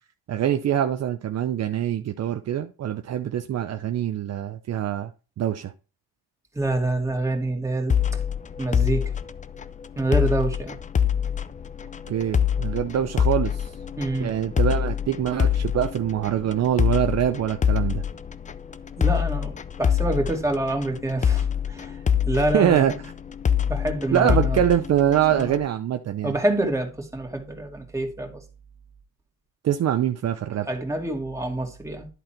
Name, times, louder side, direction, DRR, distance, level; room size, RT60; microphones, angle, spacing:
voice 1, 0.3-5.1 5.4-5.7 12.1-13.7 14.2-18.0 22.5-22.9 24.1-26.3 29.6-30.7, right 10 dB, 50° right, 0.7 m, -24 dB
voice 2, 6.5-7.9 8.6-9.1 10.0-10.8 14.0-14.3 19.0-19.5 19.8-22.0 22.3-23.0 23.7-24.6 25.3-25.5 26.2-28.4 30.7-32.1, right 2 dB, 10° right, 2.4 m, -26 dB
sound 1, 7.9-25.6, left 8 dB, 20° left, 0.5 m, -25 dB
11.0 x 3.9 x 4.4 m
cardioid pair, 90°, 35 cm